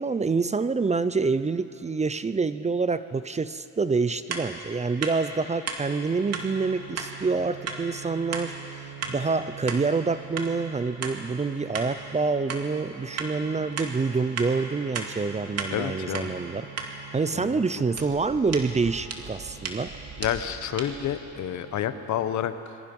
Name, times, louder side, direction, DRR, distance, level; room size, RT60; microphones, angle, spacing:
voice 1, 0.0-16.6 17.1-19.9, right 4 dB, 20° right, 13 dB, 0.6 m, -27 dB
sound 1, 4.3-4.5 5.0-5.2 5.7-5.8 6.3-6.5 7.0-7.1 7.6-7.8 8.3-8.5 9.0-9.2 9.7-9.8 10.4-10.5 11.0-11.2 11.7-11.9 12.5-12.6 13.2-13.3 13.8-13.9 14.4-14.5 14.9-15.1 15.6-15.7 16.1-16.3 16.8-16.9 17.9-21.2, right 5 dB, 55° right, 2.6 m, -34 dB
sound 2, 6.1-22.3, right 8 dB, 70° right, 2.5 m, -45 dB
voice 2, 15.7-16.3 17.3-17.6 20.2-22.8, left 10 dB, 70° left, 11 dB, 1.1 m, -29 dB
27.0 x 22.0 x 5.4 m, 2.8 s
cardioid pair, 90°, 30 cm